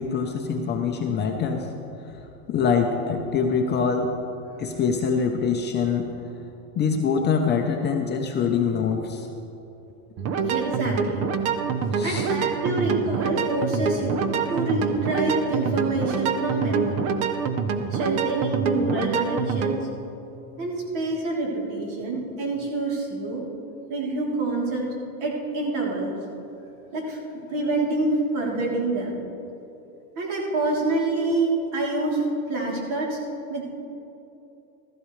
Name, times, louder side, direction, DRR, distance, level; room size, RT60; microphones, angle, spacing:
voice 1, 0.0-1.7 2.5-4.1 4.6-6.1 6.8-9.3 11.9-12.3, left 6 dB, 25° left, 2 dB, 0.7 m, -24 dB
sound 1, 10.2-19.8, right 6 dB, 35° right, 0.6 m, -26 dB
voice 2, 10.4-11.3 12.0-17.1 17.9-19.8 20.6-23.4 23.9-24.8 25.2-26.1 26.9-27.2 27.5-29.1 30.2-32.2 32.5-33.2 33.5-33.7, right 2 dB, 55° right, -3 dB, 3.4 m, -26 dB
15.0 x 14.0 x 3.2 m, 2.9 s
supercardioid pair, 140°, 44 cm